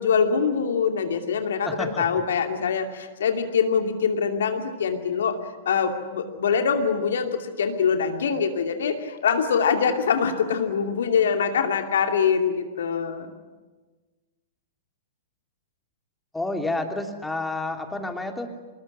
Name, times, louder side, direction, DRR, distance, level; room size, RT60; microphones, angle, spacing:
voice 1, 0.0-5.4 5.7-13.3, left 6 dB, 60° left, 5 dB, 2.5 m, -24 dB
voice 2, 1.6-2.2 16.3-18.5, left 2 dB, 5° left, 4 dB, 3.1 m, -29 dB
26.0 x 21.0 x 9.8 m, 1.3 s
figure-of-eight pair, 100°, 0 cm